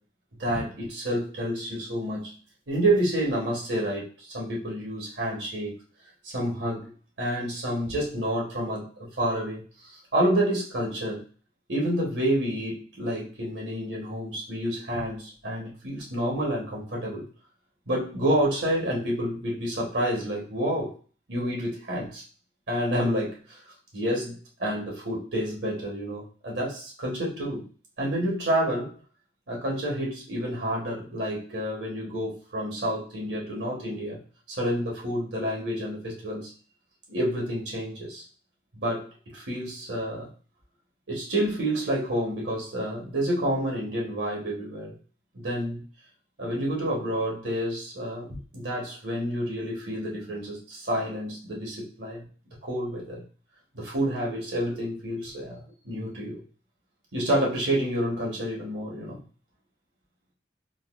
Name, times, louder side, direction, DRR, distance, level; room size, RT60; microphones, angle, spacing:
voice 1, 0.4-2.4 2.7-5.7 6.2-6.9 7.2-11.2 11.7-17.3 17.9-21.0 21.3-22.2 22.7-23.6 23.9-27.6 28.0-29.0 29.5-34.2 34.5-36.5 37.1-38.2 38.7-39.1 39.3-40.3 41.1-45.0 45.3-45.8 46.4-52.2 52.6-53.2 53.7-56.4 57.1-59.2, right 1 dB, 90° right, -3 dB, 1.3 m, -29 dB
3.9 x 2.2 x 2.5 m, 0.39 s
head